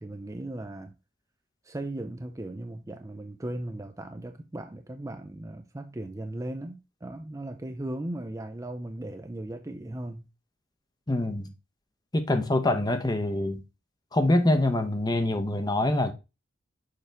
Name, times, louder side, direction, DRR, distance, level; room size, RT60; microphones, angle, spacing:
voice 1, 0.0-0.9 1.6-10.3, right 1 dB, 15° right, 0.5 m, -37 dB
voice 2, 11.1-11.5 12.1-13.6 14.1-16.1, left 1 dB, 20° left, 0.8 m, -25 dB
6.6 x 5.0 x 3.4 m
head